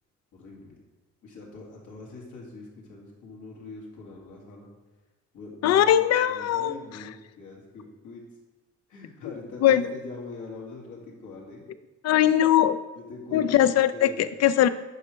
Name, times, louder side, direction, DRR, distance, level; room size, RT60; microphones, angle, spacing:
voice 1, 0.3-0.8 1.2-4.7 5.3-8.2 8.9-11.6 12.9-14.3, left 3 dB, 85° left, -2 dB, 2.0 m, -43 dB
voice 2, 5.6-6.7 9.6-9.9 12.0-12.8 13.3-14.7, left 11 dB, 60° left, 14 dB, 0.5 m, -20 dB
10.5 x 5.1 x 3.2 m, 1.2 s
cardioid pair, 90°, 30 cm